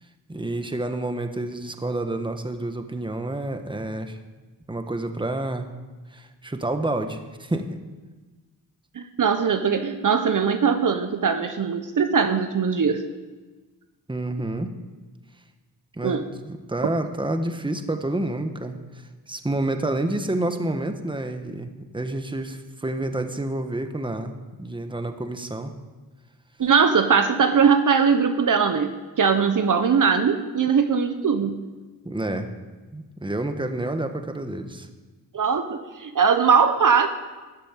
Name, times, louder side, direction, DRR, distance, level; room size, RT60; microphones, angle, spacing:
voice 1, 0.3-4.2 4.7-5.7 6.1-7.8 14.1-14.7 15.9-25.7 32.0-32.5 32.9-34.9, right 2 dB, 15° right, 6 dB, 1.4 m, -29 dB
voice 2, 8.9-13.0 16.0-16.3 26.6-31.6 35.3-37.1, right 6 dB, 55° right, 8 dB, 1.0 m, -20 dB
13.5 x 8.6 x 9.0 m, 1.3 s
cardioid pair, 80°, 38 cm